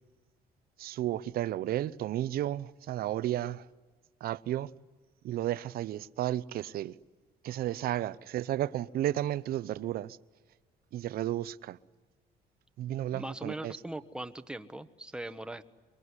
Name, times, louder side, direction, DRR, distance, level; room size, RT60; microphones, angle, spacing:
voice 1, 0.8-3.7 4.2-4.7 5.2-6.9 7.4-10.2 10.9-11.8 12.8-13.7, right 13 dB, 65° right, 0.7 m, -33 dB
voice 2, 13.1-15.6, right 1 dB, 5° right, 1.2 m, -40 dB
23.5 x 23.5 x 9.7 m
cardioid pair, 110°, 17 cm